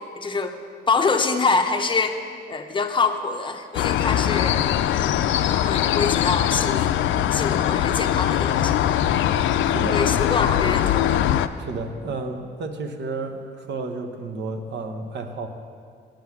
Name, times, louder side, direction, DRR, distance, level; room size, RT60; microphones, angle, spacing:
voice 1, 0.1-0.6 0.9-2.2 2.5-7.0 7.3-8.8 9.9-11.2, left 4 dB, 25° left, 5 dB, 0.8 m, -25 dB
sound 1, 3.7-11.5, left 11 dB, 70° left, 0.4 m, -21 dB
voice 2, 9.7-10.3 11.6-15.5, right 3 dB, 60° right, 6 dB, 0.9 m, -32 dB
8.6 x 7.9 x 5.8 m, 2.2 s
cardioid pair, 90°, 20 cm